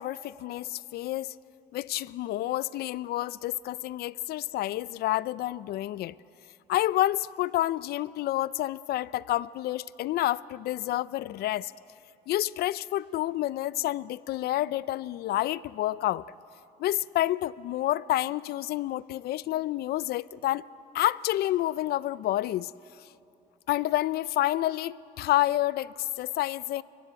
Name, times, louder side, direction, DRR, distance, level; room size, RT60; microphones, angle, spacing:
voice 1, 0.0-1.3 1.7-6.2 6.7-11.7 12.3-16.2 16.8-20.7 20.9-22.7 23.7-26.8, left 15 dB, 70° left, 0.5 m, -29 dB
29.0 x 16.0 x 9.1 m
cardioid pair, 110°, 17 cm